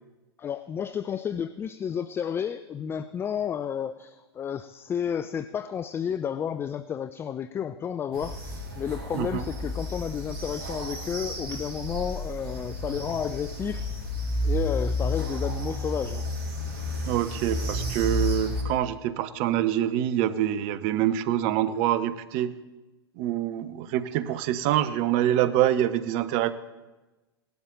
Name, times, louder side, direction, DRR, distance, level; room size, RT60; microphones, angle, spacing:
voice 1, 0.4-13.9 14.4-16.3, left 8 dB, 15° left, 14 dB, 0.4 m, -31 dB
sound 1, 8.1-18.6, left 1 dB, 60° right, 3.3 m, -31 dB
voice 2, 17.1-22.6 23.2-26.5, right 12 dB, 45° right, 14 dB, 0.8 m, -25 dB
17.5 x 11.5 x 3.9 m, 1.1 s
figure-of-eight pair, 95°, 13 cm